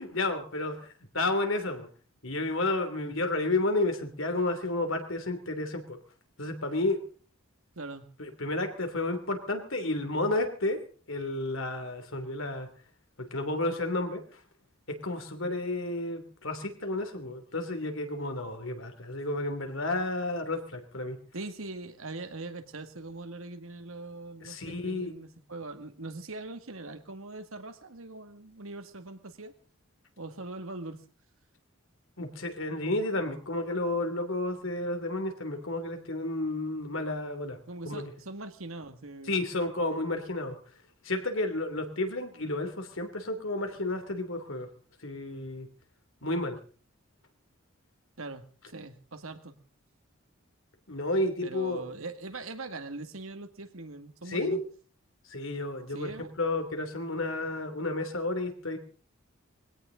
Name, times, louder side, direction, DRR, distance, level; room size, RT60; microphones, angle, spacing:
voice 1, 0.0-1.9 2.2-6.0 6.4-7.0 8.2-12.7 13.2-14.4 14.9-21.2 24.4-25.1 32.2-37.6 37.8-38.1 39.2-40.6 41.0-44.7 45.0-45.7 46.2-46.6 50.9-51.8 54.3-54.6 55.3-58.8, left 2 dB, 70° left, 7 dB, 3.1 m, -31 dB
voice 2, 21.3-29.5 30.2-31.0 37.7-39.5 48.2-49.5 51.4-54.6 55.9-56.3, right 2 dB, 80° right, 7 dB, 2.1 m, -41 dB
21.5 x 17.0 x 3.9 m, 0.40 s
head